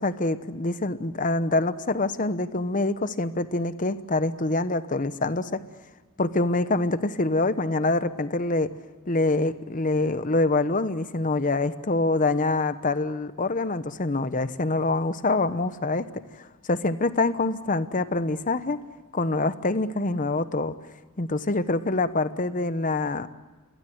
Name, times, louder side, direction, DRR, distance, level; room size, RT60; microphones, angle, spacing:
voice 1, 0.0-5.6 6.2-8.7 9.1-16.1 16.4-18.8 19.1-20.7 21.2-23.3, left 2 dB, 35° left, 13 dB, 1.0 m, -25 dB
29.0 x 22.5 x 8.0 m, 1.2 s
head